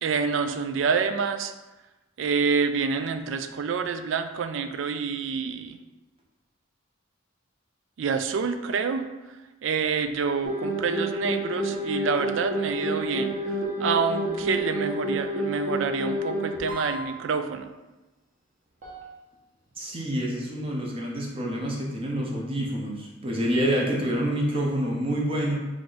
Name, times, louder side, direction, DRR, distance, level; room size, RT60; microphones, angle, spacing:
voice 1, 0.0-1.5 2.2-5.8 8.0-9.1 9.6-17.7, right 5 dB, 65° right, 9 dB, 0.3 m, -27 dB
sound 1, 10.4-17.0 18.8-19.0, equal, 40° right, 1.1 m, -29 dB
voice 2, 19.8-25.6, equal, 25° right, -2 dB, 0.6 m, -27 dB
4.7 x 2.5 x 3.9 m, 1.1 s
head